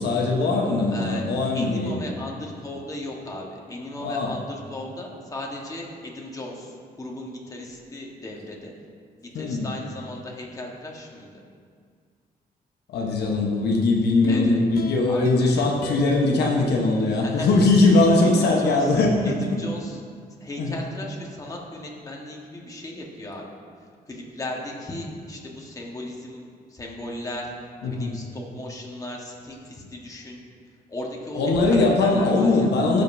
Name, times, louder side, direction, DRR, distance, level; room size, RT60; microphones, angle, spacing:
voice 1, 0.0-2.1 4.0-4.3 9.3-9.7 12.9-19.4 20.6-20.8 27.8-28.1 31.3-33.0, left 2 dB, 85° left, 0 dB, 1.0 m, -21 dB
voice 2, 0.9-1.2 1.5-8.7 9.2-11.3 14.3-14.6 15.1-15.7 17.1-17.6 17.9-18.9 19.2-20.0 20.4-23.5 24.1-27.5 27.8-30.4 30.9-32.7, left 1 dB, 20° left, -1 dB, 1.3 m, -36 dB
sound 1, 14.2-17.5 18.0-18.1, left 4 dB, 65° left, 0.6 m, -34 dB
15.5 x 5.2 x 2.7 m, 2.1 s
cardioid pair, 115°, 17 cm